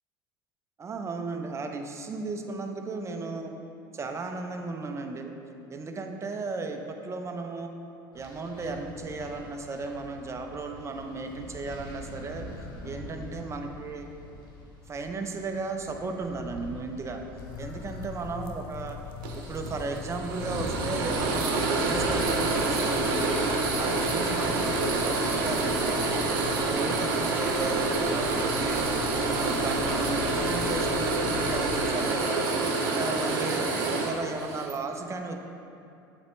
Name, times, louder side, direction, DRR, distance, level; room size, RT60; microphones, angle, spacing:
voice 1, 0.8-3.6 3.9-5.3 5.7-7.8 8.1-12.5 12.8-14.1 14.9-17.2 17.6-19.0 19.3-26.0 26.3-28.8 29.1-32.4 32.8-33.7 33.9-35.4, right 3 dB, 25° right, 4 dB, 0.6 m, -35 dB
sound 1, 8.1-24.2, left 1 dB, 80° left, 1.1 m, -44 dB
sound 2, 17.4-31.9, left 6 dB, 50° left, 0.7 m, -40 dB
sound 3, 19.2-34.7, right 3 dB, 70° right, 0.8 m, -27 dB
7.2 x 4.2 x 3.2 m, 2.7 s
hypercardioid pair, 80°, 12 cm